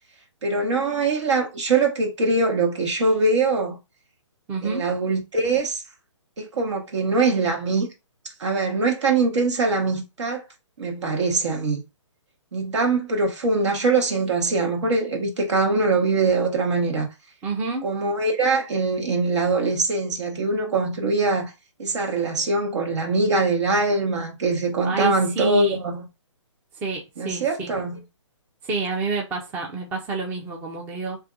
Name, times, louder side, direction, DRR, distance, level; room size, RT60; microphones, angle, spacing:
voice 1, 0.4-3.8 4.6-5.8 6.4-7.9 8.4-10.4 10.8-11.8 12.5-17.1 17.8-21.5 21.8-26.1 27.2-28.0, right 3 dB, 65° right, 1.4 m, -23 dB
voice 2, 4.5-4.8 17.4-17.9 24.8-25.8 26.8-27.7 28.6-31.2, right 3 dB, 10° right, 0.5 m, -28 dB
3.4 x 2.8 x 2.5 m
hypercardioid pair, 150°, 16 cm